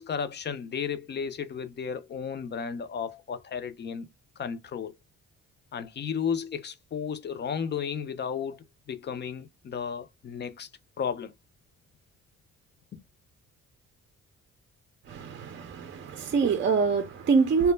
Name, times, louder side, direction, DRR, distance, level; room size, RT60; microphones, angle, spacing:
voice 1, 0.0-4.1 4.4-4.9 5.7-10.7 11.0-11.3 12.9-13.0, left 7 dB, 35° left, 0.4 m, -33 dB
voice 2, 15.1-17.7, right 5 dB, 40° right, 0.5 m, -25 dB
2.1 x 2.0 x 3.1 m
cardioid pair, 90°, 30 cm